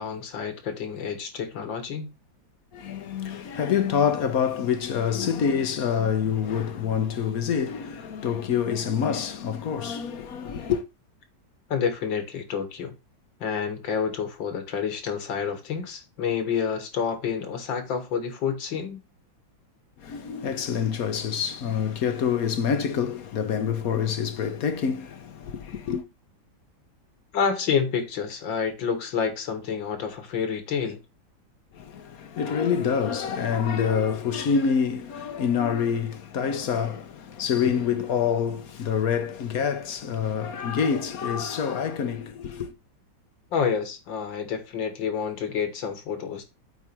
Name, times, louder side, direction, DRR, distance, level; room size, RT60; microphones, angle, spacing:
voice 1, 0.0-2.1 11.7-12.9 13.4-19.0 27.3-31.0 43.5-46.5, left 6 dB, 75° left, 2.2 m, -28 dB
voice 2, 2.7-10.8 20.0-26.1 31.7-42.7, left 7 dB, 60° left, 1.1 m, -26 dB
8.3 x 4.7 x 4.5 m
omnidirectional pair, 2.1 m